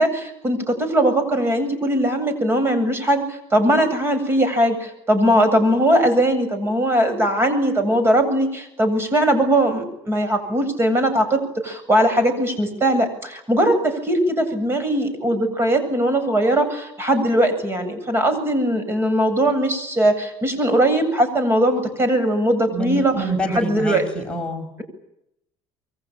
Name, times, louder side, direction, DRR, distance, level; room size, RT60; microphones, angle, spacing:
voice 1, 0.0-24.1, right 1 dB, 25° right, 9 dB, 8.0 m, -20 dB
voice 2, 22.7-24.7, right 2 dB, 10° left, 2 dB, 5.6 m, -26 dB
27.5 x 23.5 x 9.1 m, 0.80 s
cardioid pair, 120°, 10 cm